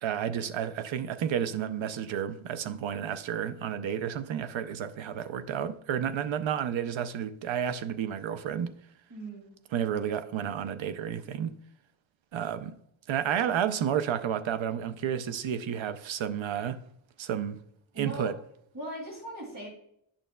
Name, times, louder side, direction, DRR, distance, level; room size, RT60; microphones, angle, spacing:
voice 1, 0.0-8.8 9.7-11.5 12.3-12.8 13.1-16.8 17.2-17.6 18.0-18.3, right 9 dB, 65° right, 0.6 m, -31 dB
voice 2, 9.1-9.5 17.9-18.3 18.7-19.7, right 1 dB, 40° right, 2.5 m, -39 dB
8.7 x 6.4 x 2.2 m
wide cardioid pair, 115°, 50 cm